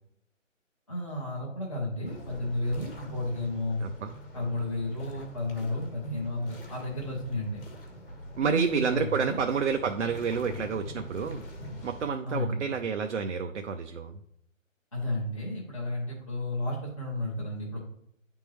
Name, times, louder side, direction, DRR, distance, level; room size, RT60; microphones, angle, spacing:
voice 1, 0.9-3.8 4.3-7.6 8.4-9.4 12.2-12.6 14.9-17.8, left 1 dB, 25° left, -6 dB, 0.7 m, -32 dB
sound 1, 2.0-12.1, left 1 dB, 45° left, 1.1 m, -44 dB
voice 2, 3.8-4.1 8.4-11.4 11.8-14.2, right 6 dB, 60° right, 6 dB, 0.5 m, -29 dB
8.8 x 3.6 x 3.0 m, 0.72 s
hypercardioid pair, 175°, 40 cm